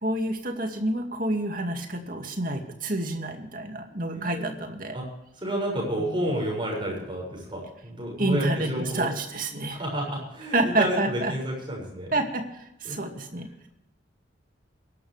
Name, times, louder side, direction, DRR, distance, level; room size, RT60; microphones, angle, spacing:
voice 1, 0.0-5.0 6.0-6.4 8.2-9.8 10.5-11.3 12.1-13.5, right 2 dB, 45° right, 4 dB, 2.3 m, -28 dB
voice 2, 4.1-4.7 4.9-5.0 5.4-9.1 9.7-12.1 12.8-13.0, right 1 dB, 25° right, -1 dB, 6.7 m, -30 dB
23.0 x 12.0 x 3.4 m, 0.83 s
head